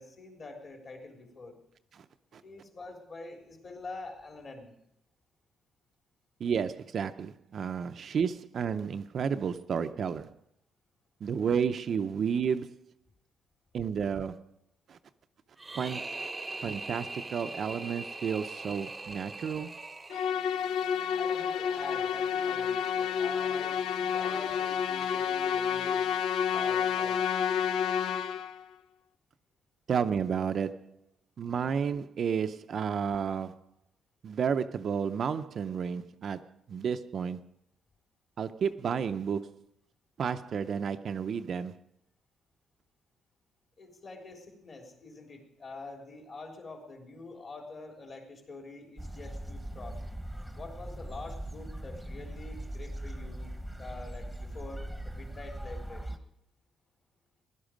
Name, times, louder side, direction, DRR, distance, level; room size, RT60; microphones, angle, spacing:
voice 1, 0.0-1.6 2.4-4.8 21.1-26.1 26.5-27.2 43.8-50.0 50.6-56.2, left 3 dB, 40° left, 3.4 m, -45 dB
voice 2, 6.4-10.3 11.2-12.8 13.7-14.5 14.9-15.0 15.7-16.3 16.6-19.7 29.9-31.0 31.4-33.6 34.2-36.4 36.7-37.4 38.4-39.6 40.2-41.7, right 7 dB, 50° right, 0.5 m, -31 dB
sound 1, 15.6-20.7, right 3 dB, 15° right, 0.8 m, -41 dB
Musical instrument, 20.1-28.6, left 8 dB, 80° left, 0.5 m, -30 dB
sound 2, 49.0-56.2, right 1 dB, ahead, 1.2 m, -40 dB
16.5 x 11.5 x 5.1 m
cardioid pair, 130°, 0 cm